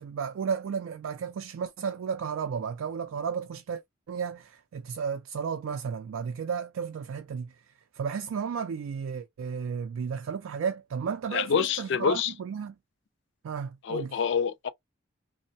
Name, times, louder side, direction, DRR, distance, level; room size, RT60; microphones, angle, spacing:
voice 1, 0.0-3.8 4.1-7.5 7.9-12.7 13.4-14.2, right 6 dB, 90° right, 0.3 m, -33 dB
voice 2, 11.3-12.3 13.8-14.7, left 7 dB, 60° left, 0.3 m, -27 dB
3.1 x 2.0 x 2.6 m
head